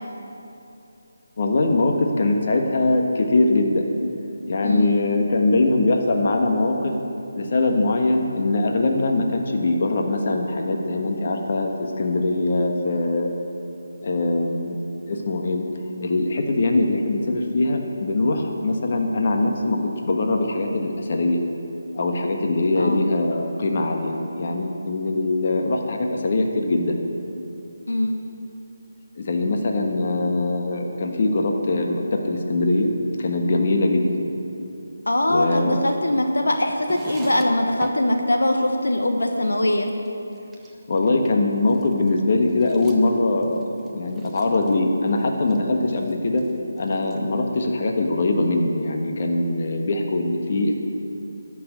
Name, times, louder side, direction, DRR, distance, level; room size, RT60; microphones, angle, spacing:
voice 1, 1.4-3.8 4.5-6.9 7.4-13.3 14.0-14.8 15.0-15.7 16.0-21.4 21.9-27.0 29.2-32.9 33.2-34.3 35.3-35.8 40.9-43.7 43.9-46.4 46.8-50.7, left 2 dB, 45° left, 2 dB, 1.3 m, -22 dB
voice 2, 4.6-4.9 22.8-23.1 27.8-28.1 35.1-39.9, left 1 dB, 85° left, 3 dB, 1.2 m, -22 dB
sound 1, 36.7-38.0 38.5-38.6 38.8-39.0 39.3-40.1 40.3-41.4 41.7-44.8 45.1-45.6 45.9-46.5 46.8-47.2, right 2 dB, 10° right, 0.7 m, -42 dB
13.0 x 6.1 x 8.3 m, 2.8 s
figure-of-eight pair, 160°, 0 cm